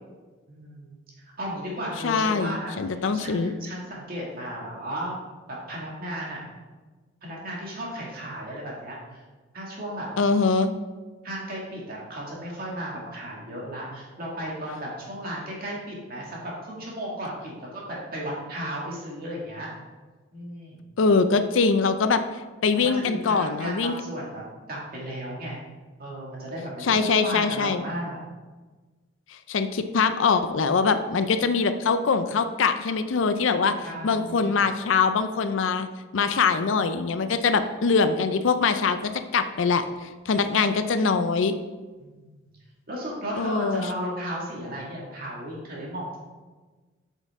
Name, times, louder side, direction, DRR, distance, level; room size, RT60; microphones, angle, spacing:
voice 1, 0.5-5.2 5.5-6.4 7.2-9.2 9.5-10.1 11.2-19.7 20.3-20.8 22.7-25.6 26.0-28.2 33.8-34.5 42.0-42.4 42.9-46.3, equal, 45° right, -4 dB, 2.1 m, -35 dB
voice 2, 2.0-3.5 10.2-10.7 21.0-22.2 22.6-23.9 26.8-27.8 29.5-33.7 34.0-35.9 36.1-41.5 43.4-43.8, left 5 dB, 65° left, 10 dB, 0.5 m, -23 dB
8.1 x 5.5 x 3.6 m, 1.3 s
head